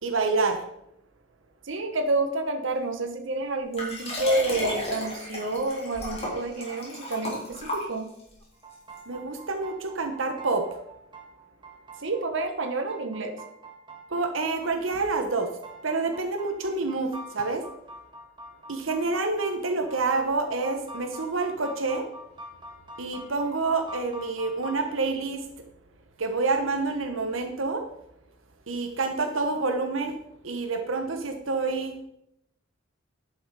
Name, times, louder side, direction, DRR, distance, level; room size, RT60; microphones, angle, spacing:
voice 1, 0.0-0.6 9.1-10.8 14.1-15.5 15.8-17.6 18.7-22.1 23.0-25.5 26.2-27.8 28.7-30.2 30.4-31.9, right 3 dB, 90° right, 5 dB, 1.1 m, -28 dB
voice 2, 1.6-8.1 12.0-13.4, right 2 dB, 70° right, 5 dB, 1.2 m, -29 dB
Liquid, 3.7-8.3 9.0-9.1, left 1 dB, 30° left, 3.4 m, -33 dB
sound 1, 8.5-25.0, right 1 dB, 25° right, 1.6 m, -45 dB
10.5 x 6.3 x 4.8 m, 0.79 s
head